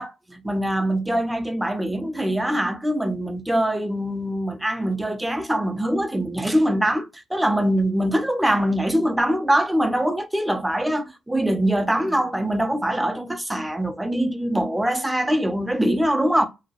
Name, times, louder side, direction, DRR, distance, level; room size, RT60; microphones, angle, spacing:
voice 1, 0.0-16.5, right 1 dB, 5° right, 0.5 m, -23 dB
2.7 x 2.3 x 2.9 m
cardioid pair, 90°, 0 cm